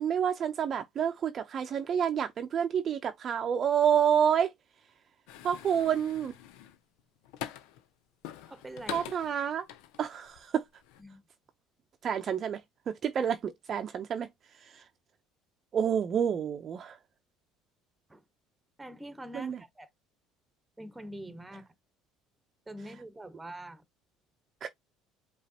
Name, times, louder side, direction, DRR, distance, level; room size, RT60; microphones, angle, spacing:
voice 1, 0.0-4.5 5.4-6.3 8.9-9.7 10.0-10.6 12.0-12.6 12.9-14.3 14.6-14.8 15.7-17.0 19.3-19.6 24.6-24.7, right 8 dB, 40° right, 0.6 m, -28 dB
sound 1, 5.3-7.9 8.2-10.4 10.8-11.0, left 11 dB, 80° left, 0.8 m, -44 dB
voice 2, 8.5-9.1 11.0-11.2 18.1-18.2 18.8-19.9 20.8-21.7 22.7-23.8, right 1 dB, 10° right, 1.2 m, -44 dB
5.1 x 3.1 x 2.9 m
supercardioid pair, 105°, 0 cm